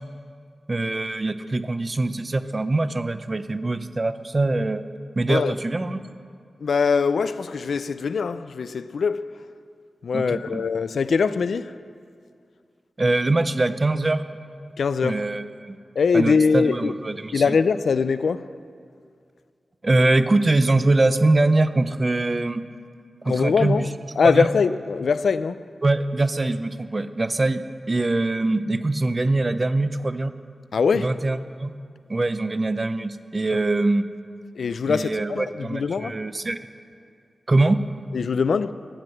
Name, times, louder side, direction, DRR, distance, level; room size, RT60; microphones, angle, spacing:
voice 1, 0.7-4.8 5.2-6.0 10.1-10.6 13.0-14.2 15.0-15.8 16.1-17.6 19.8-22.6 23.2-23.9 24.2-24.5 25.8-30.3 30.9-31.7 32.1-34.1 34.8-36.6 37.5-37.8, right 2 dB, 35° right, 0.7 m, -23 dB
voice 2, 6.6-9.4 10.0-11.7 14.8-15.2 16.0-16.9 17.3-18.5 23.3-23.9 24.2-25.6 30.7-31.1 34.6-36.1 38.1-38.7, left 5 dB, 85° left, 0.4 m, -22 dB
15.0 x 9.6 x 7.8 m
wide cardioid pair, 80°, 0 cm